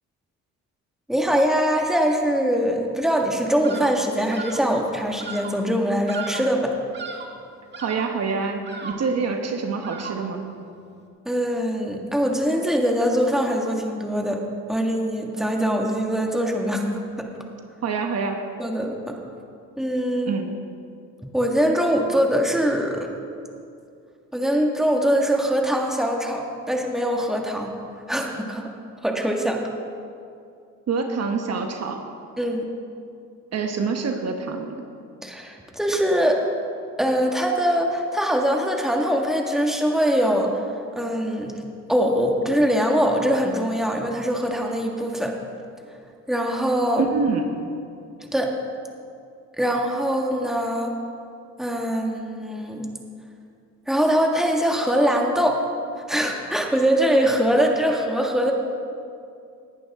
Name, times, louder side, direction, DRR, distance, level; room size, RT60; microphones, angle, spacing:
voice 1, 1.1-6.7 11.3-14.4 14.7-17.3 18.6-19.2 19.8-20.3 21.2-23.1 24.3-27.7 28.1-28.7 29.0-29.6 32.4-32.6 35.2-36.4 37.0-40.6 41.0-41.5 41.9-45.4 46.3-47.1 48.2-48.5 49.6-50.9 51.6-52.9 53.9-55.6 56.1-58.5, equal, ahead, 1 dB, 1.8 m, -22 dB
Bird vocalization bird call bird song, 3.6-4.0 4.3-4.7 5.2-5.6 6.1-6.6 6.9-7.4 7.7-8.2 8.6-9.2 9.8-10.4, right 5 dB, 35° right, 1.6 m, -36 dB
voice 2, 7.8-10.4 17.8-18.5 20.3-20.5 30.9-32.0 33.5-34.7 47.1-47.5, right 4 dB, 55° right, 4 dB, 1.2 m, -26 dB
19.0 x 11.0 x 3.7 m, 2.4 s
cardioid pair, 90°, 30 cm